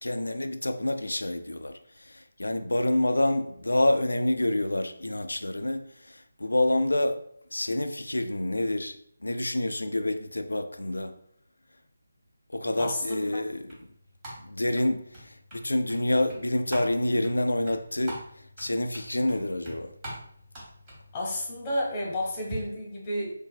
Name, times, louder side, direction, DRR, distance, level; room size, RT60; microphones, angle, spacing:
voice 1, 0.0-1.7 2.1-7.2 7.5-9.0 9.2-11.1 12.5-13.7 14.4-18.2 18.6-19.9, left 1 dB, 85° left, 8 dB, 0.4 m, -27 dB
voice 2, 12.8-13.3 21.1-23.3, left 1 dB, 20° left, -4 dB, 0.9 m, -31 dB
sound 1, 12.9-22.6, right 1 dB, 20° right, 1.2 m, -45 dB
4.0 x 2.6 x 2.2 m, 0.65 s
figure-of-eight pair, 160°, 0 cm